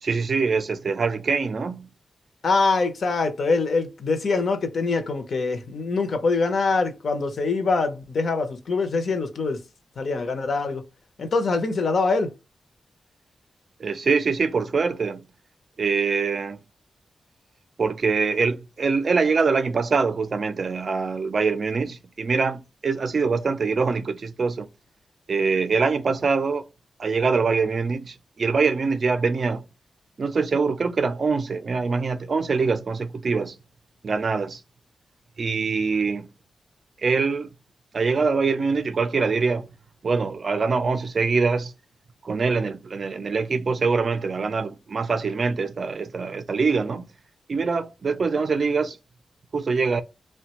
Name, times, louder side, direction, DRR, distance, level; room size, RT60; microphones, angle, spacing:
voice 1, 0.0-1.9 13.8-15.2 15.8-16.6 17.8-24.7 25.3-26.7 27.0-29.6 30.2-33.5 34.0-34.6 35.4-36.3 37.0-37.5 37.9-39.7 40.0-41.7 42.2-47.0 47.5-49.0 49.5-50.0, right 4 dB, 45° right, 0.4 m, -24 dB
voice 2, 2.4-9.6 10.0-10.8 11.2-12.3, left 3 dB, 55° left, 0.7 m, -24 dB
3.3 x 2.2 x 2.9 m
wide cardioid pair, 145°, 0 cm